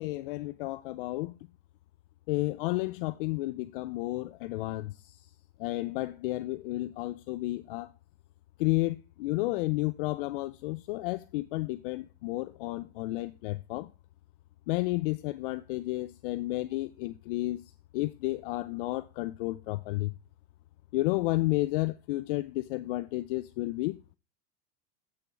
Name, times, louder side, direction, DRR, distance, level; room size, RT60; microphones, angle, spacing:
voice 1, 0.0-1.4 2.3-5.2 5.6-7.9 8.6-13.9 14.7-17.6 17.9-20.1 20.9-24.0, left 19 dB, 55° left, 0.5 m, -32 dB
7.8 x 6.8 x 4.5 m
supercardioid pair, 165°, 32 cm